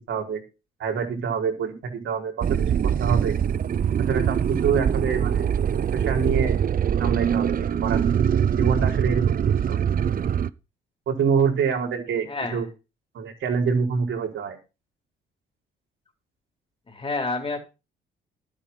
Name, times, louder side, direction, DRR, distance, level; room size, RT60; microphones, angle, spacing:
voice 1, 0.1-0.4 0.8-3.3 4.0-5.5 5.9-6.6 7.0-8.2 8.5-9.8 11.1-12.7 13.1-14.6, right 6 dB, 75° right, 2 dB, 4.9 m, -26 dB
sound 1, 2.4-10.5, right 8 dB, 45° right, 0.7 m, -23 dB
voice 2, 12.3-12.6 16.9-17.6, left 3 dB, 25° left, 3 dB, 4.2 m, -29 dB
12.5 x 9.0 x 5.9 m, 0.29 s
cardioid pair, 90°, 20 cm